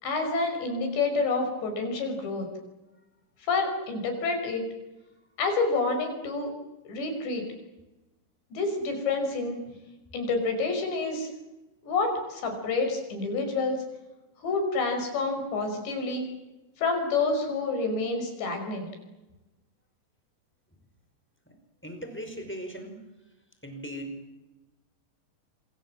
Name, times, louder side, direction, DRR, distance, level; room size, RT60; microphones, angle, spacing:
voice 1, 0.0-2.5 3.5-4.6 5.4-6.5 6.9-7.4 8.5-9.6 10.1-11.3 11.8-13.8 14.4-16.3 16.8-18.9, left 3 dB, 65° left, 5 dB, 7.8 m, -28 dB
voice 2, 21.8-22.9 23.6-24.2, equal, ahead, 5 dB, 4.6 m, -38 dB
27.0 x 25.5 x 7.6 m, 1.0 s
omnidirectional pair, 5.5 m